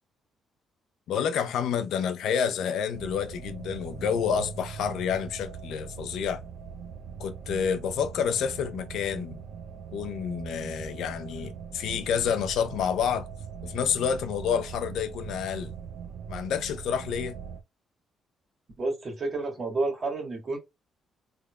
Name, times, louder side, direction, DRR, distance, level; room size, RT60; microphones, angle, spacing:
voice 1, 1.1-6.4 7.2-9.4 9.9-13.3 13.6-15.7 16.3-17.4, left 7 dB, 80° left, 0.5 m, -29 dB
sound 1, 2.9-17.6, right 7 dB, 75° right, 0.5 m, -41 dB
voice 2, 18.8-20.6, right 3 dB, 40° right, 1.9 m, -30 dB
3.5 x 3.3 x 2.3 m
cardioid pair, 90°, 0 cm